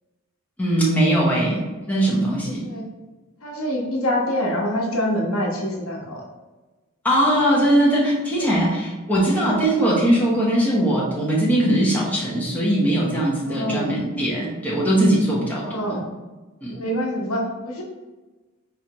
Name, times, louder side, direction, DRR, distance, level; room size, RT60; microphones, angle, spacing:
voice 1, 0.6-2.6 7.0-16.0 16.6-16.8, right 1 dB, 10° left, -6 dB, 0.9 m, -20 dB
voice 2, 2.4-2.8 3.4-6.2 8.4-8.5 12.3-12.4 13.4-13.9 15.6-16.0 16.7-17.8, equal, 85° left, -1 dB, 0.9 m, -26 dB
4.6 x 3.2 x 2.9 m, 1.2 s
head